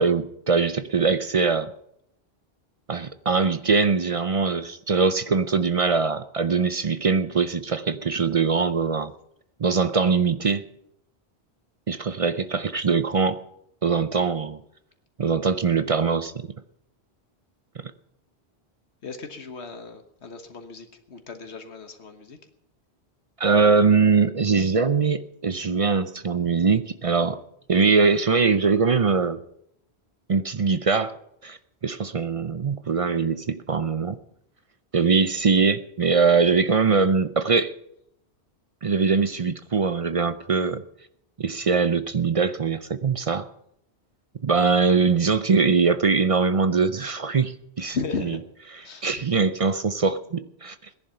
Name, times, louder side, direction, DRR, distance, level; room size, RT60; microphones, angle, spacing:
voice 1, 0.0-1.7 2.9-9.1 9.6-10.6 11.9-13.4 13.8-14.6 15.2-16.5 23.4-27.4 27.7-29.4 30.3-31.2 31.4-31.6 31.8-34.2 34.9-37.7 38.8-40.8 41.4-43.5 44.4-48.0 48.7-50.8, right 5 dB, 40° right, 12 dB, 0.5 m, -22 dB
voice 2, 19.0-22.4 47.8-48.4 48.8-49.1, left 4 dB, 85° left, 6 dB, 1.6 m, -35 dB
17.0 x 10.5 x 5.7 m, 0.74 s
omnidirectional pair, 1.1 m